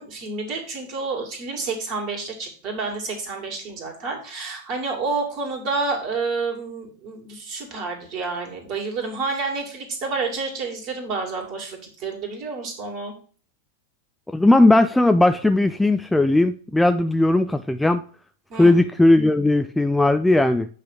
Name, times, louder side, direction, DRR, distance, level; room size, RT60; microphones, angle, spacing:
voice 1, 0.0-13.1 18.5-18.8, right 4 dB, 40° right, 2 dB, 2.4 m, -29 dB
voice 2, 14.3-18.0 18.6-20.7, left 2 dB, 5° left, 9 dB, 0.3 m, -17 dB
8.0 x 3.3 x 5.9 m, 0.43 s
figure-of-eight pair, 95°, 0 cm